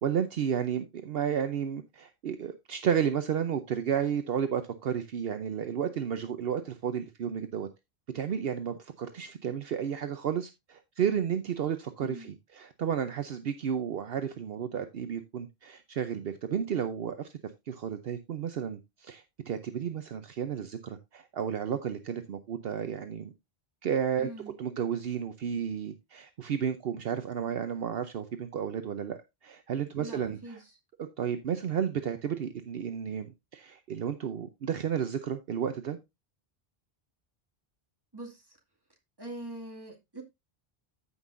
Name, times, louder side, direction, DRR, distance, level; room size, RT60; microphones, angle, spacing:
voice 1, 0.0-7.7 8.1-17.3 17.7-23.3 23.8-24.3 24.6-30.6 31.2-36.0, right 8 dB, 70° right, 0.9 m, -32 dB
voice 2, 24.2-24.5 30.0-30.7 38.1-38.6 39.2-40.2, right 1 dB, 20° right, 2.2 m, -43 dB
14.0 x 5.6 x 2.6 m
omnidirectional pair, 1.1 m